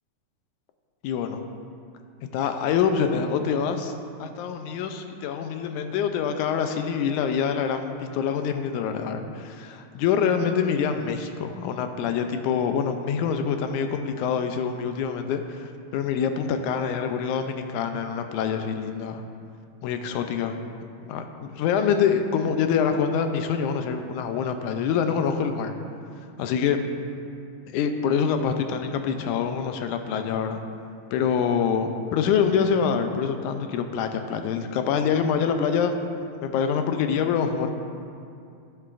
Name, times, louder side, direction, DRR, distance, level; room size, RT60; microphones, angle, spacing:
voice 1, 1.0-1.4 2.3-3.9 4.2-19.2 19.8-20.6 21.0-25.7 26.4-26.8 27.7-30.6 31.1-36.0 36.4-37.7, left 7 dB, 80° left, 6 dB, 1.9 m, -25 dB
15.5 x 6.8 x 2.5 m, 2.5 s
omnidirectional pair, 3.8 m